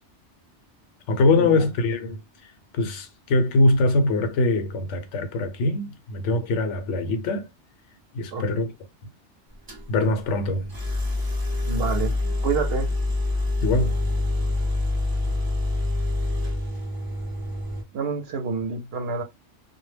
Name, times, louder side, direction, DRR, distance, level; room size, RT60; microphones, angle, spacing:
voice 1, 1.1-2.2 2.7-7.5 8.1-8.7 9.9-10.7 13.6-13.9, left 2 dB, 85° left, 0.9 m, -22 dB
sound 1, 9.7-9.8 10.7-17.8, left 2 dB, 30° right, 0.4 m, -26 dB
voice 2, 11.6-12.2 12.4-12.9 17.9-19.2, right 5 dB, 65° right, 0.7 m, -27 dB
2.2 x 2.0 x 3.2 m
omnidirectional pair, 1.2 m